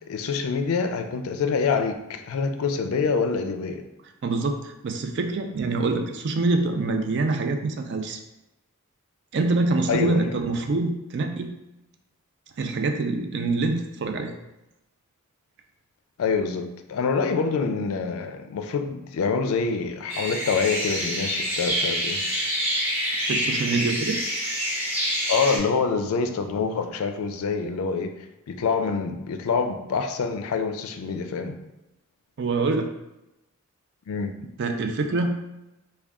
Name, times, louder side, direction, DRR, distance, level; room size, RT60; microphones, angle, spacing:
voice 1, 0.1-3.8 9.9-10.4 16.2-22.2 25.3-28.1 28.5-31.6 34.1-34.3, left 5 dB, 70° left, 7 dB, 0.4 m, -26 dB
voice 2, 4.2-8.2 9.3-11.5 12.6-14.3 23.3-24.2 32.4-32.9 34.6-35.4, right 3 dB, 50° right, 5 dB, 0.4 m, -25 dB
sound 1, 20.1-25.6, equal, 10° right, 0.8 m, -27 dB
3.6 x 2.2 x 3.5 m, 0.95 s
head